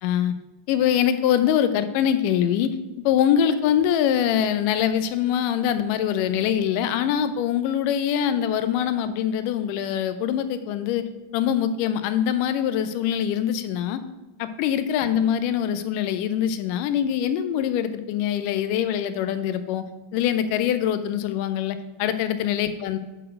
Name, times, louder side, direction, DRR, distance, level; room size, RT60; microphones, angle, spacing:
voice 1, 0.0-0.3 0.7-2.7 3.0-11.0 11.3-14.0 14.4-19.8 20.1-23.0, left 9 dB, 80° left, 11 dB, 2.2 m, -23 dB
8.7 x 4.4 x 6.4 m, 1.1 s
omnidirectional pair, 3.8 m